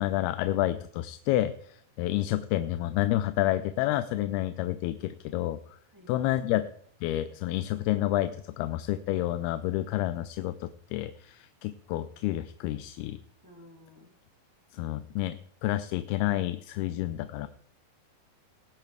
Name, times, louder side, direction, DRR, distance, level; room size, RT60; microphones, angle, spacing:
voice 1, 0.0-5.6 6.1-6.6 7.0-13.2 14.7-17.5, left 14 dB, 85° left, 11 dB, 2.5 m, -29 dB
voice 2, 5.9-6.6 13.4-14.1, left 1 dB, 5° right, -1 dB, 2.1 m, -54 dB
19.0 x 9.4 x 3.3 m, 0.63 s
omnidirectional pair, 4.5 m